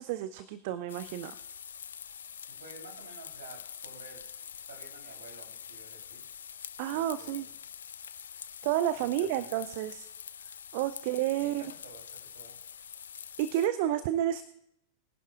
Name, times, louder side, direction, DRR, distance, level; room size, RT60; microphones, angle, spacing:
voice 1, 0.0-1.3 6.8-7.5 8.6-10.1 10.7-11.6 13.4-14.4, right 12 dB, 50° right, 13 dB, 0.5 m, -30 dB
sound 1, 0.9-13.7, left 8 dB, 65° left, 0.4 m, -45 dB
voice 2, 2.5-4.2 4.7-6.2 6.9-7.5 8.9-9.6 10.7-11.0 11.4-12.6, right 3 dB, 65° right, 1 dB, 3.4 m, -51 dB
22.0 x 11.0 x 2.5 m, 0.78 s
figure-of-eight pair, 90°, 0 cm